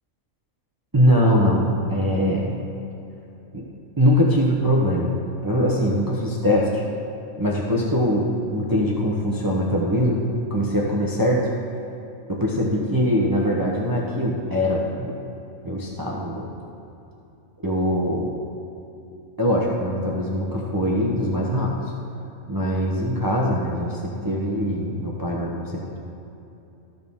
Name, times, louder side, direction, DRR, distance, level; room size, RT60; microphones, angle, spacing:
voice 1, 0.9-2.6 3.5-3.6 4.0-5.1 5.4-6.8 7.4-11.5 12.3-15.2 15.6-16.5 17.6-18.3 19.4-21.7 22.5-26.0, equal, 20° right, -3 dB, 0.8 m, -22 dB
13.5 x 6.4 x 3.6 m, 2.9 s
omnidirectional pair, 1.3 m